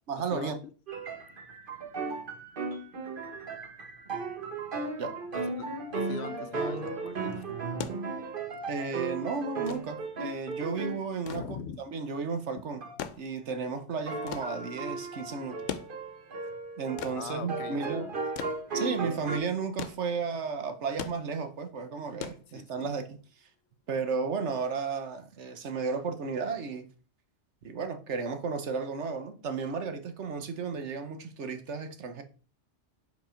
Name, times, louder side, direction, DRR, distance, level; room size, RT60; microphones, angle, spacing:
voice 1, 0.1-0.5 5.0-5.1 8.7-11.5 11.8-12.8 13.2-15.8 16.8-18.1 18.7-23.5 23.9-26.9 27.6-32.2, right 5 dB, 70° right, 1.2 m, -33 dB
sound 1, 0.9-11.1 12.8-13.0 14.1-19.4, right 3 dB, 45° right, 1.2 m, -36 dB
voice 2, 5.3-7.5 11.3-11.8 12.5-12.6 17.1-18.2 22.5-22.9, left 8 dB, 70° left, 0.8 m, -42 dB
sound 2, 7.6-23.1 24.3-24.4, left 8 dB, 90° left, 1.0 m, -43 dB
5.3 x 5.3 x 5.0 m
omnidirectional pair, 1.3 m